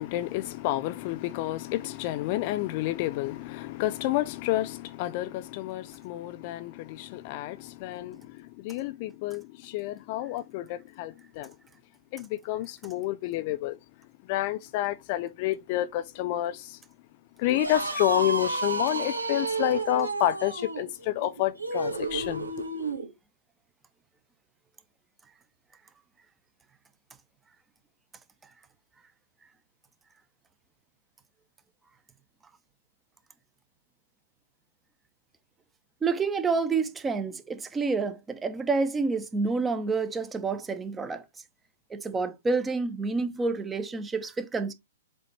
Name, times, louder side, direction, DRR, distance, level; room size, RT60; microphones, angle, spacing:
voice 1, 0.0-11.5 12.1-13.8 14.3-16.8 17.4-23.0, left 15 dB, 40° left, 0.5 m, -30 dB
sound 1, 17.4-23.1, right 3 dB, 85° right, 2.2 m, -31 dB
voice 2, 36.0-41.2 41.9-44.7, right 4 dB, 15° right, 0.9 m, -28 dB
7.4 x 4.1 x 3.4 m
figure-of-eight pair, 115°, 0 cm